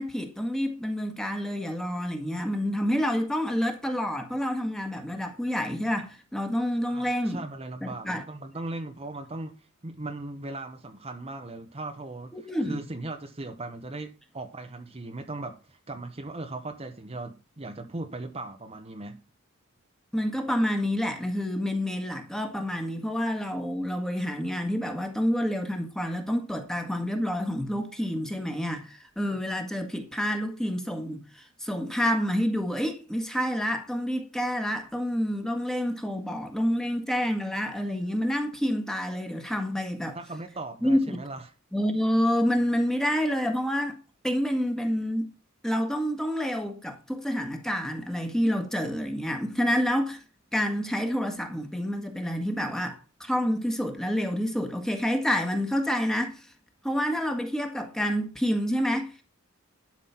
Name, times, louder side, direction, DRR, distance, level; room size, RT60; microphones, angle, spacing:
voice 1, 0.0-7.4 7.8-8.2 12.3-12.8 20.1-40.2 40.8-41.2 41.7-44.0 44.2-45.3 45.6-50.2 50.5-56.5 56.8-59.2, equal, ahead, 1.6 m, -28 dB
voice 2, 6.8-12.3 12.6-19.2 40.1-41.5, right 2 dB, 30° right, 1.0 m, -38 dB
11.5 x 6.0 x 5.8 m
head